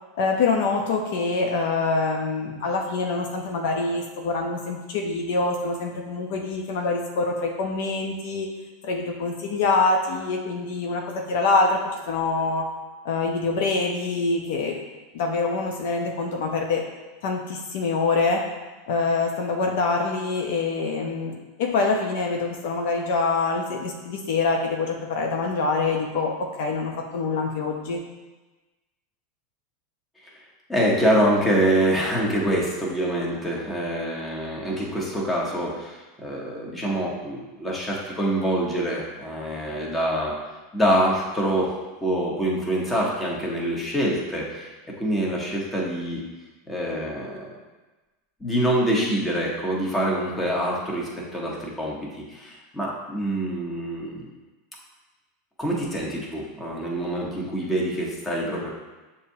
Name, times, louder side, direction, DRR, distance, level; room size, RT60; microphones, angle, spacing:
voice 1, 0.1-8.5 8.8-12.7 13.0-14.8 15.1-16.8 17.2-18.5 18.9-28.0, left 3 dB, 70° left, 1 dB, 0.5 m, -25 dB
voice 2, 30.7-40.3 40.7-41.7 42.0-44.7 45.0-46.2 46.7-47.5 48.4-54.3 55.6-58.7, right 1 dB, 15° left, -3 dB, 1.1 m, -25 dB
6.5 x 2.7 x 2.7 m, 1.2 s
hypercardioid pair, 110°, 0 cm